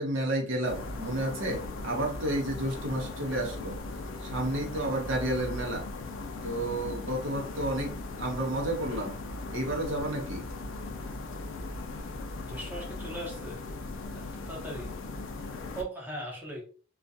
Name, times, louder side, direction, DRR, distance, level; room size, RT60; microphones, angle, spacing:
voice 1, 0.0-3.8 4.2-5.9 6.4-9.2 9.5-10.4, right 1 dB, 75° right, 0.7 m, -31 dB
sound 1, 0.6-15.8, left 2 dB, 75° left, 0.4 m, -38 dB
voice 2, 12.4-13.6 14.5-14.9 15.7-16.7, right 1 dB, 10° right, 0.8 m, -38 dB
2.3 x 2.2 x 2.6 m
head